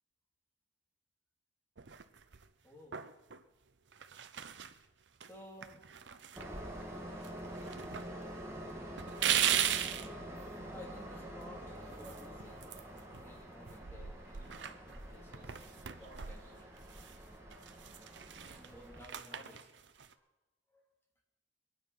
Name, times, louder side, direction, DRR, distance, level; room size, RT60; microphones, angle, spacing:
sound 1, 1.8-2.5 2.9-3.4 3.9-4.8 5.2-5.3 5.6-6.9 7.2-8.1 8.4-8.5 9.0-10.1 11.9-13.3 13.6-17.2 17.5-20.1, right 10 dB, 70° right, 0.7 m, -38 dB
voice 1, 2.6-3.0 5.2-5.9 10.7-17.0 18.4-19.7 20.1-20.2 20.7-20.8, left 1 dB, 10° left, -2 dB, 3.0 m, -55 dB
Train, 6.4-19.0, right 1 dB, 15° right, 2.0 m, -47 dB
22.5 x 9.6 x 5.8 m, 0.99 s
head